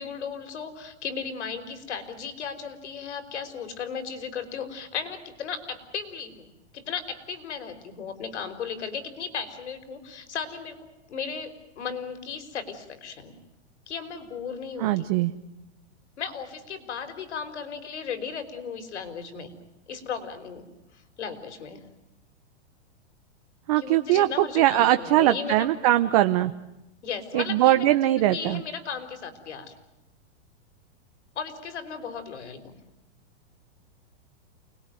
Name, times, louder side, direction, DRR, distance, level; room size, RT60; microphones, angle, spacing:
voice 1, 0.0-13.3 13.9-15.1 16.2-19.5 19.9-20.7 21.2-21.8 23.8-25.7 27.0-27.8 28.3-29.7 31.3-32.7, left 6 dB, 85° left, 9 dB, 4.9 m, -36 dB
voice 2, 14.8-15.3 23.7-26.5 27.3-28.6, right 14 dB, 35° right, 9 dB, 0.9 m, -21 dB
29.0 x 21.0 x 9.3 m, 0.93 s
supercardioid pair, 170°, 34 cm